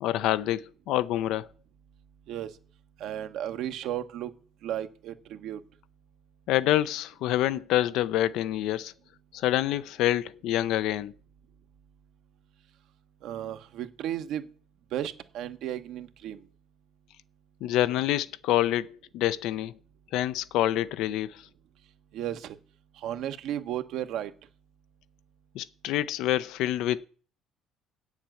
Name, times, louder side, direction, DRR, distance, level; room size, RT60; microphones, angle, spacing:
voice 1, 0.0-1.5 6.5-8.9 9.3-11.1 17.6-19.7 20.1-21.4 25.5-27.0, left 13 dB, 75° left, 0.5 m, -27 dB
voice 2, 3.0-4.3 4.6-5.6 13.2-14.5 14.9-16.4 22.1-22.6 23.0-24.3, right 11 dB, 70° right, 1.0 m, -34 dB
8.3 x 7.3 x 7.7 m
cardioid pair, 115°, 0 cm